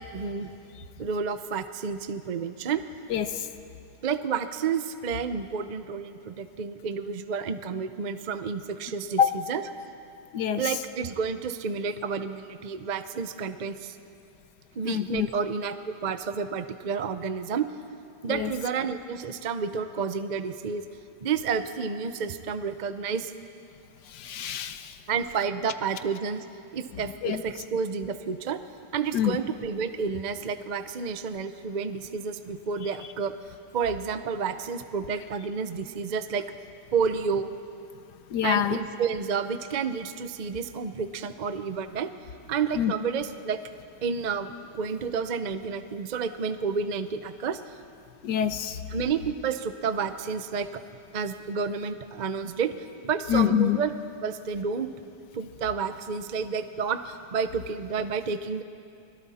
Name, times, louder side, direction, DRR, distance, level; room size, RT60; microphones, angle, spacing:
voice 1, 0.1-0.5 1.0-2.8 4.0-9.7 10.6-14.0 14.7-17.7 18.2-20.9 21.2-23.3 25.1-26.4 26.7-28.6 28.9-33.3 33.7-36.4 36.9-37.5 38.4-42.1 42.5-43.6 44.0-47.6 48.9-50.8 51.1-52.7 53.0-53.9 54.2-54.9 55.3-58.6, right 6 dB, 60° right, 10 dB, 0.4 m, -30 dB
voice 2, 14.8-15.3 18.3-18.5 24.2-24.8 27.2-27.4 29.1-29.4 38.3-38.8 42.8-42.9 48.2-48.8 53.3-53.8, left 10 dB, 75° left, 11 dB, 1.4 m, -25 dB
29.5 x 21.5 x 4.3 m, 2.5 s
omnidirectional pair, 1.9 m